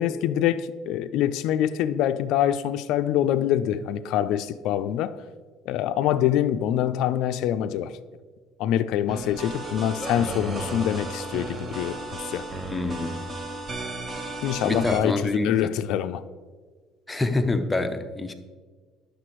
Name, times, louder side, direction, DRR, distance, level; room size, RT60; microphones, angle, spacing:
voice 1, 0.0-5.2 5.7-7.9 8.6-12.4 14.4-16.2, left 11 dB, 70° left, 0.3 m, -25 dB
sound 1, 9.1-15.0, right 2 dB, 25° right, 0.8 m, -34 dB
voice 2, 12.7-13.1 14.6-15.5 17.1-18.3, left 2 dB, 10° left, 0.5 m, -26 dB
9.5 x 6.6 x 3.0 m
cardioid pair, 135°, 0 cm